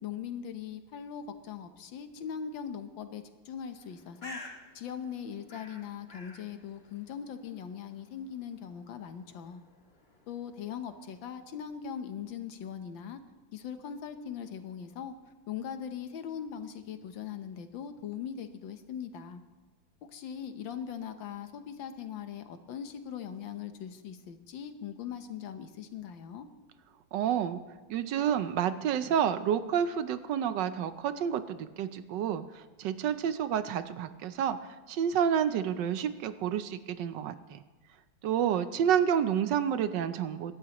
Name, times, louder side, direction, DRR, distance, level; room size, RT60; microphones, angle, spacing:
voice 1, 0.0-4.4 4.7-9.6 10.3-13.2 13.5-15.1 15.5-19.4 20.1-26.5, left 8 dB, 80° left, 8 dB, 1.7 m, -40 dB
Bird, 3.7-11.3, left 1 dB, 30° left, 2.0 m, -52 dB
voice 2, 27.1-27.6 27.9-37.6 38.2-40.5, right 9 dB, 75° right, 12 dB, 1.2 m, -29 dB
25.0 x 12.0 x 3.0 m, 1.4 s
omnidirectional pair, 2.1 m